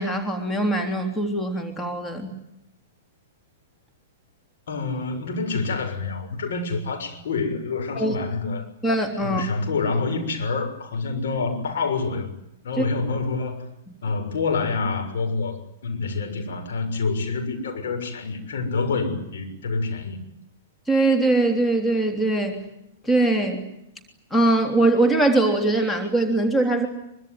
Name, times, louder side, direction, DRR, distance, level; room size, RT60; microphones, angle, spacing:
voice 1, 0.0-2.3 8.0-8.1 8.8-9.4 12.8-12.9 20.9-22.6 23.0-23.6 24.3-26.9, right 2 dB, 10° left, 4 dB, 3.3 m, -21 dB
voice 2, 4.7-8.7 9.2-12.3 12.6-13.6 14.0-20.2, left 4 dB, 55° left, 5 dB, 6.6 m, -27 dB
24.0 x 23.5 x 9.5 m, 0.81 s
figure-of-eight pair, 105°, 0 cm